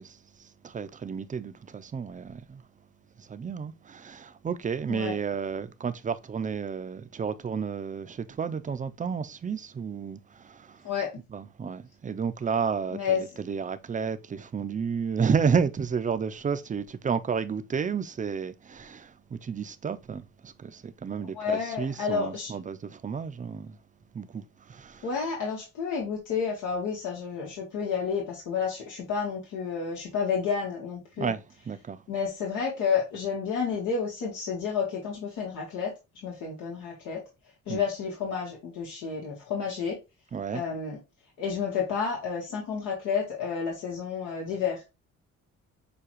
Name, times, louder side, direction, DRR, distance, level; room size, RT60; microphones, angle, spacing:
voice 1, 0.0-2.6 3.2-10.9 11.3-23.8 24.1-25.1 31.2-32.0 37.7-37.8 40.3-40.6, right 6 dB, 25° right, 0.4 m, -31 dB
voice 2, 12.9-13.2 21.2-22.5 25.0-31.3 32.1-35.9 36.2-37.2 37.7-40.0 40.5-41.0 41.4-44.8, left 6 dB, 90° left, 1.3 m, -30 dB
6.8 x 2.3 x 3.0 m
cardioid pair, 90°, 30 cm